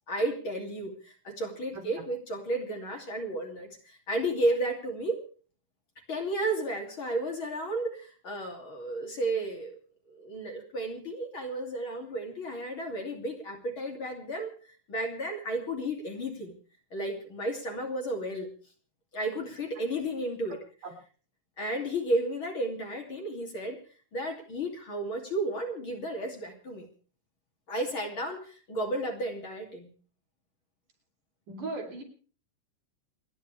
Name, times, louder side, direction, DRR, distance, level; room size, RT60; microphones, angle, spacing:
voice 1, 0.1-5.2 6.1-9.7 10.1-14.5 14.9-16.6 16.9-18.5 19.1-20.6 21.6-23.8 24.1-26.9 27.7-29.9, right 1 dB, 40° left, 2 dB, 3.4 m, -33 dB
voice 2, 31.5-32.0, right 3 dB, 70° right, 1 dB, 5.1 m, -37 dB
28.5 x 10.5 x 3.4 m, 0.41 s
omnidirectional pair, 3.9 m